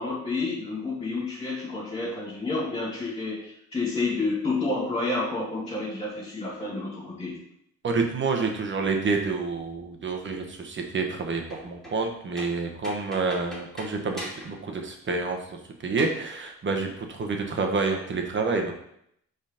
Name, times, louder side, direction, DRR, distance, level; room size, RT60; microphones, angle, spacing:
voice 1, 0.0-7.4, left 3 dB, 20° left, -10 dB, 2.2 m, -30 dB
voice 2, 7.8-18.7, right 4 dB, 40° right, 3 dB, 1.2 m, -28 dB
sound 1, 11.4-12.1 12.4-14.7 14.9-15.0 16.0-16.2, equal, ahead, 2.7 m, -41 dB
5.1 x 3.9 x 5.0 m, 0.72 s
cardioid pair, 90°, 30 cm